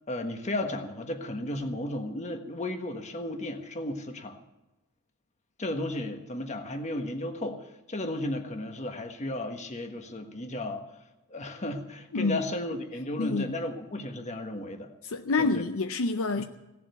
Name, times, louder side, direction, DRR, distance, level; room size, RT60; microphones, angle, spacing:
voice 1, 0.1-4.4 5.6-10.8 11.3-14.9 15.4-15.6 16.4-16.5, left 1 dB, 30° left, 1.4 m, -34 dB
voice 2, 13.2-13.5 15.0-16.4, left 3 dB, 65° left, 0.6 m, -27 dB
17.5 x 7.5 x 9.3 m
head